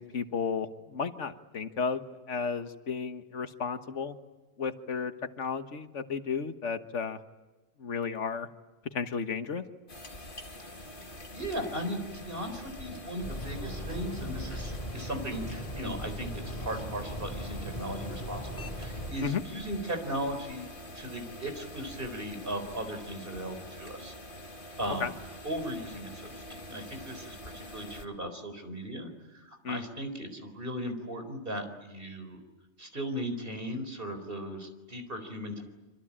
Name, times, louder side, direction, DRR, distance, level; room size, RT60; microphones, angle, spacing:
voice 1, 0.0-4.2 4.6-7.2 7.8-8.5 8.9-9.6 19.2-19.4 25.0-25.1 29.6-29.9, left 5 dB, 85° left, 9 dB, 1.7 m, -33 dB
sound 1, 9.9-28.1, left 1 dB, 45° left, 2.1 m, -45 dB
voice 2, 11.3-20.7 20.9-24.1 24.8-25.1 25.4-32.4 32.8-35.6, equal, 50° right, 7 dB, 4.5 m, -37 dB
sound 2, 13.2-19.1, equal, 30° left, 7.9 m, -38 dB
26.0 x 26.0 x 8.8 m, 1.1 s
omnidirectional pair, 1.2 m